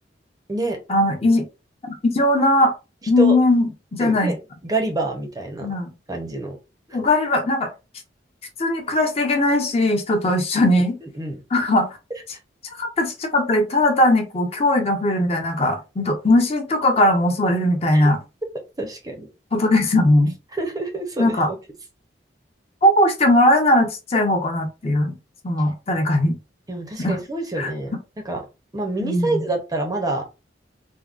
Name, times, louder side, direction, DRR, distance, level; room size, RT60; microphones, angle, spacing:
voice 1, 0.9-1.4 2.0-2.7 3.1-4.3 5.6-5.9 6.9-7.7 8.6-11.0 11.5-11.9 12.6-18.2 19.5-20.3 21.2-21.5 22.8-25.1 25.4-26.4 27.0-27.2 27.6-27.7 29.0-29.4, left 1 dB, 35° left, 0.6 m, -19 dB
voice 2, 4.0-4.4 4.6-5.7 6.1-6.6 6.9-7.0 11.0-11.4 17.9-18.1 18.8-19.3 20.5-21.4 26.7-27.9 28.2-28.4 28.7-30.2, right 2 dB, 20° right, 0.5 m, -27 dB
3.4 x 2.1 x 2.3 m
head